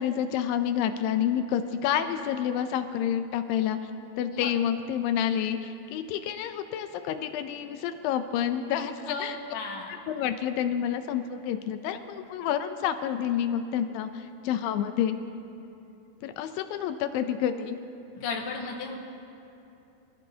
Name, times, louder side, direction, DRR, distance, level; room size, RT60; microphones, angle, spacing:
voice 1, 0.0-3.9 4.2-9.4 10.1-15.2 16.2-17.8, left 9 dB, 85° left, 9 dB, 2.3 m, -29 dB
voice 2, 9.0-9.9 18.1-18.9, left 4 dB, 50° left, 0 dB, 1.9 m, -35 dB
25.5 x 15.0 x 2.8 m, 2.7 s
omnidirectional pair, 4.0 m